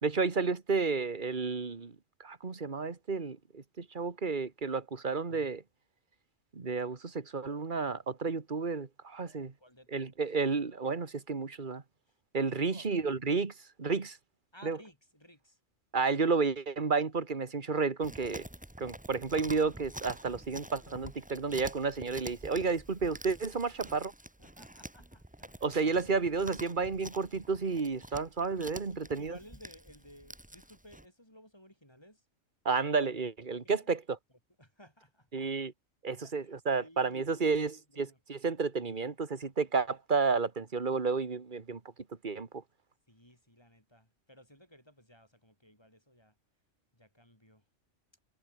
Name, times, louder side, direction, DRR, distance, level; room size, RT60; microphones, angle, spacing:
voice 1, 0.0-5.6 6.5-9.5 9.9-11.8 12.3-13.5 13.8-14.2 14.6-14.8 15.9-18.5 18.8-24.1 25.6-29.4 32.7-34.2 35.3-35.7 36.0-41.8 42.2-42.6, right 4 dB, 40° right, 1.9 m, -31 dB
voice 2, 9.2-10.1 12.1-12.2 12.5-12.9 14.5-15.6 24.4-26.1 28.9-32.2 33.5-33.9 34.6-35.3 36.2-38.2 43.1-46.3 46.9-47.6, equal, 20° left, 7.6 m, -58 dB
Chewing mastication, 18.0-31.1, right 1 dB, 5° right, 1.2 m, -48 dB
omnidirectional pair, 1.3 m